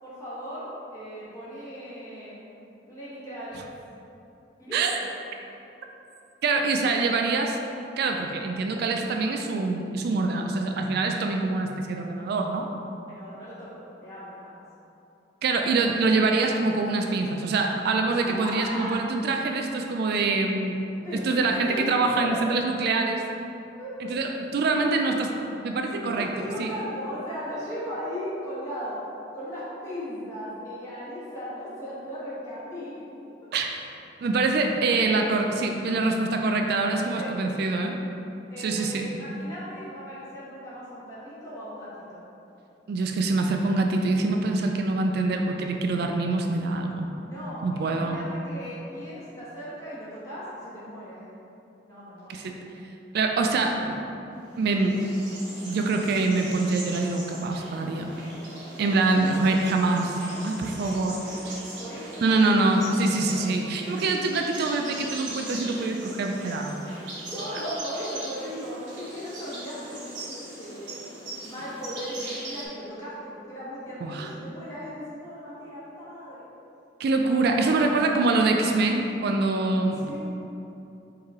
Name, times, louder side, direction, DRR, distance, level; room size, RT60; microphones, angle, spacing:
voice 1, 0.0-2.4 2.9-3.6 4.6-5.0 13.1-14.6 18.3-18.9 21.0-21.2 21.7-22.4 23.8-23.9 26.1-29.0 29.3-32.9 36.9-37.3 38.5-42.2 47.2-51.3 51.9-52.5 59.1-59.4 61.8-63.3 67.2-71.0 71.4-76.4 77.3-78.2 79.9-80.2, equal, 20° left, -11 dB, 1.2 m, -37 dB
voice 2, 6.4-7.6 8.0-12.7 15.4-20.8 21.1-23.2 24.1-25.3 25.6-26.3 26.6-26.7 33.5-33.7 34.2-38.0 38.6-39.1 42.9-47.1 47.6-48.2 52.3-52.6 53.1-54.0 54.6-55.0 55.7-58.1 58.8-60.2 60.4-61.2 62.2-66.8 74.0-74.3 77.0-80.2, right 3 dB, 60° right, 3 dB, 0.3 m, -25 dB
sound 1, 54.4-72.7, right 1 dB, 75° right, 1.2 m, -40 dB
4.4 x 3.2 x 3.6 m, 2.8 s
head